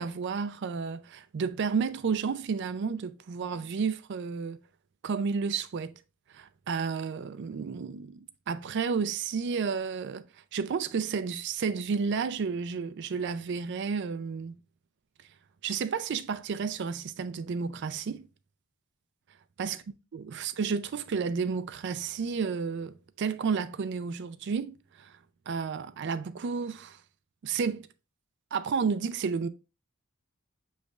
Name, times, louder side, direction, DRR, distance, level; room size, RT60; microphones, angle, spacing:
voice 1, 0.0-4.6 5.0-5.9 6.3-10.2 10.5-14.6 15.6-18.2 19.6-19.8 20.1-25.1 25.5-27.0 27.4-27.9 28.5-29.5, right 5 dB, 50° right, 0.4 m, -31 dB
6.4 x 3.1 x 2.3 m
head